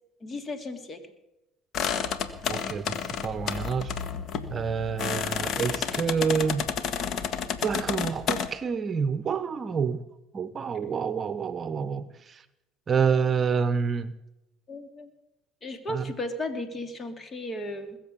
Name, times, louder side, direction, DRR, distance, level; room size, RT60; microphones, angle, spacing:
voice 1, 0.2-1.0 14.7-15.1 15.6-18.0, left 1 dB, 35° left, 3.0 m, -35 dB
sound 1, 1.7-8.5, left 7 dB, 55° left, 1.6 m, -31 dB
voice 2, 2.5-3.0 3.2-3.9 4.5-6.6 7.6-10.0 10.3-12.4 12.9-14.1 15.9-16.0, right 6 dB, 35° right, 0.9 m, -28 dB
21.0 x 7.6 x 8.6 m
hypercardioid pair, 70°, 0 cm